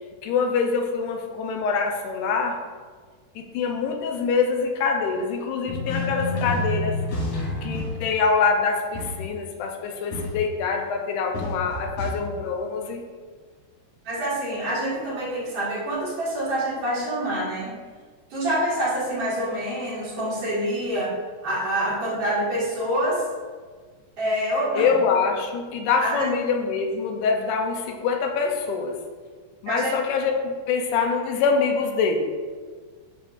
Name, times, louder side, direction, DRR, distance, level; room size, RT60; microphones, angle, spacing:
voice 1, 0.2-2.6 3.4-7.0 7.6-13.1 24.8-29.0 29.6-32.2, left 5 dB, 80° left, 3 dB, 2.0 m, -25 dB
sound 1, 5.7-8.1 8.9-9.3 10.1-10.6 11.3-12.1, left 2 dB, 65° left, 3.1 m, -29 dB
voice 2, 14.0-17.7 18.3-21.1 21.4-23.2 24.2-24.9 26.0-26.3 29.7-30.0, right 1 dB, 55° right, -7 dB, 2.5 m, -26 dB
6.9 x 5.9 x 2.4 m, 1.5 s
omnidirectional pair, 3.7 m